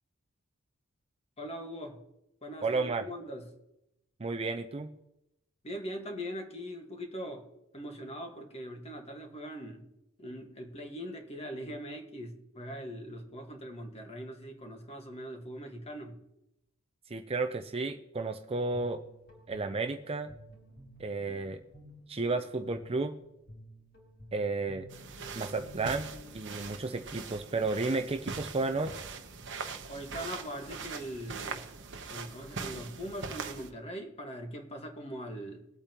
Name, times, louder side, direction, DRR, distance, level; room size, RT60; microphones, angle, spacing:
voice 1, 1.4-2.0 2.4-3.5 5.6-9.9 10.2-16.2 29.9-31.7 32.1-35.7, equal, 30° left, 1.6 m, -41 dB
voice 2, 2.6-3.1 4.2-4.9 17.1-19.0 19.5-20.3 21.0-21.6 22.1-23.1 24.3-24.9 25.4-26.1 26.3-29.0, right 3 dB, 25° right, 0.6 m, -32 dB
Guitar, 18.5-26.5, equal, 55° left, 4.3 m, -53 dB
sound 1, 24.9-33.7, right 4 dB, 55° right, 1.0 m, -42 dB
21.0 x 8.6 x 3.0 m
head